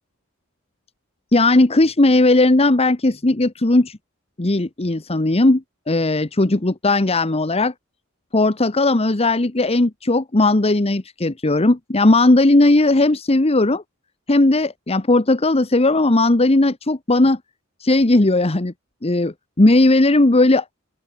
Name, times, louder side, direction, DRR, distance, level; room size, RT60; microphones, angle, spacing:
voice 1, 1.3-4.0 4.4-7.7 8.3-13.8 14.3-17.4 17.8-18.7 19.0-20.6, left 2 dB, 30° left, 1.1 m, -17 dB
open air
head